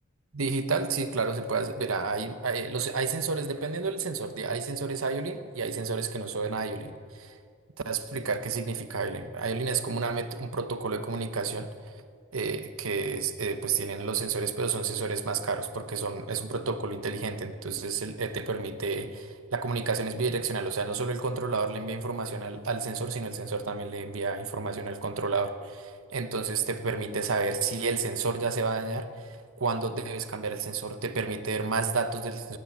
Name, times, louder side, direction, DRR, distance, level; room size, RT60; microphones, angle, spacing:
voice 1, 0.3-7.3 7.8-11.7 12.3-32.6, right 4 dB, 85° right, 9 dB, 1.0 m, -31 dB
17.5 x 9.0 x 8.5 m, 2.1 s
head